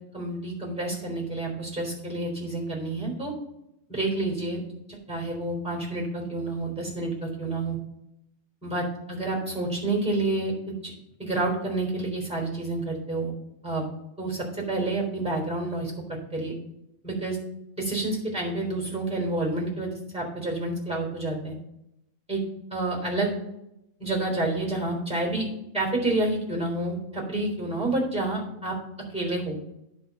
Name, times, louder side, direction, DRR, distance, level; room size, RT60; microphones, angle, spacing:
voice 1, 0.1-3.3 3.9-4.6 4.9-7.8 8.6-10.5 10.8-10.9 11.2-13.3 13.6-13.8 14.2-15.9 16.3-16.5 17.0-17.4 17.8-21.5 22.3-22.4 22.7-23.4 24.0-25.5 25.7-28.7 29.1-29.6, right 2 dB, 5° right, -1 dB, 3.6 m, -29 dB
10.5 x 4.6 x 6.4 m, 0.82 s
omnidirectional pair, 1.4 m